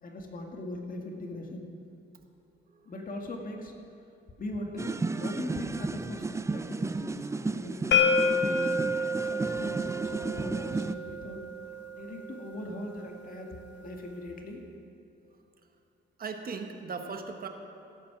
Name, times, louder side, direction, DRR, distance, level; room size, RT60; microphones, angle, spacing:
voice 1, 0.0-1.7 2.9-3.7 4.4-8.7 9.2-11.5 11.9-13.5 13.8-14.6, left 1 dB, 45° left, 2 dB, 2.0 m, -40 dB
sound 1, 4.8-10.9, right 3 dB, 15° right, 0.4 m, -33 dB
sound 2, 7.9-13.7, left 3 dB, 65° left, 1.0 m, -30 dB
voice 2, 16.2-17.5, right 5 dB, 50° right, 5 dB, 1.3 m, -39 dB
16.0 x 8.8 x 6.0 m, 2.6 s
cardioid pair, 90°, 20 cm